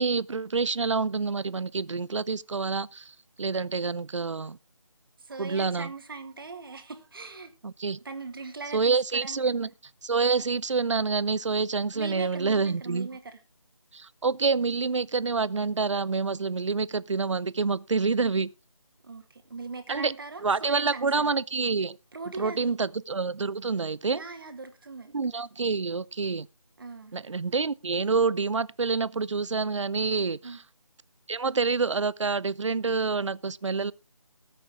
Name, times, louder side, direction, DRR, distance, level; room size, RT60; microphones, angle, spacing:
voice 1, 0.0-4.6 5.4-5.9 7.6-8.0 8.7-9.7 10.0-13.1 13.9-18.5 19.9-20.1 20.4-22.0 22.4-24.2 25.1-26.5 27.1-30.6 31.3-33.9, right 4 dB, 60° right, 0.6 m, -27 dB
voice 2, 5.2-7.5 8.0-9.7 11.9-13.4 19.0-21.3 22.1-22.9 24.1-25.2 26.8-27.1 30.4-30.6, right 4 dB, 40° right, 2.1 m, -40 dB
19.5 x 6.9 x 3.6 m
figure-of-eight pair, 170°, 18 cm